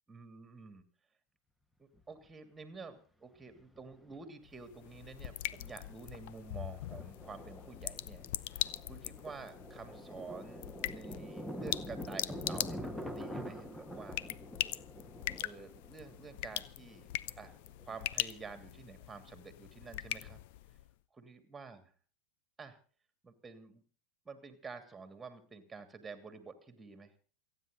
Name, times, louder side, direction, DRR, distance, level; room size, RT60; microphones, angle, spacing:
voice 1, 0.1-0.9 1.8-14.3 15.4-17.1 17.4-17.5 17.8-20.4 21.2-21.9 22.6-22.8 23.2-23.8 24.2-27.1, right 4 dB, 10° right, 9 dB, 2.9 m, -49 dB
Thunder, 2.0-2.1 3.4-4.2 4.5-4.6 5.0-5.3 5.6-18.0, equal, 5° left, 1.6 m, -46 dB
sound 1, 4.4-20.9, left 15 dB, 50° left, 0.7 m, -42 dB
28.5 x 9.8 x 3.9 m, 0.41 s
figure-of-eight pair, 90°, 0 cm